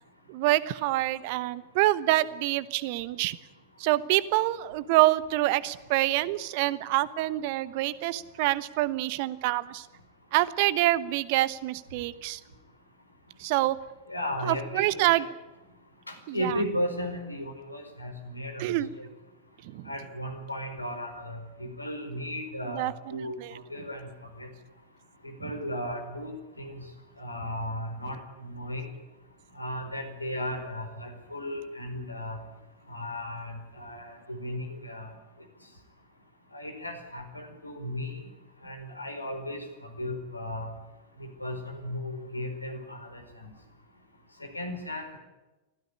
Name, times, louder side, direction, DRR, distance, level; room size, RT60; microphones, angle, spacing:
voice 1, 0.3-3.4 3.8-9.9 10.3-12.4 13.4-13.8 14.5-15.3 16.3-16.6 18.6-18.9 19.7-19.9 22.7-23.5, right 17 dB, 50° right, 17 dB, 1.1 m, -26 dB
voice 2, 14.1-15.2 16.1-18.7 19.0-19.1 19.9-24.1 24.4-24.5 25.2-26.8 27.2-28.9 29.6-32.4 32.9-35.1 36.5-38.2 38.6-40.7 41.2-43.5 44.5-45.2, left 1 dB, 85° left, 6 dB, 4.6 m, -35 dB
25.0 x 16.5 x 9.9 m, 1.1 s
figure-of-eight pair, 90°, 0 cm